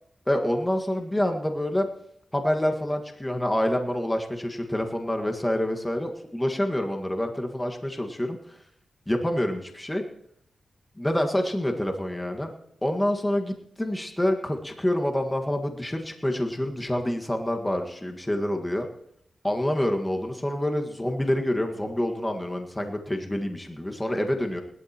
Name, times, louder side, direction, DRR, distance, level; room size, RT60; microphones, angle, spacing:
voice 1, 0.3-1.9 2.3-8.6 9.1-10.0 11.0-12.5 12.8-18.9 19.4-24.6, left 1 dB, 15° left, 3 dB, 1.6 m, -27 dB
20.5 x 12.5 x 3.0 m, 0.71 s
cardioid pair, 50°, 0 cm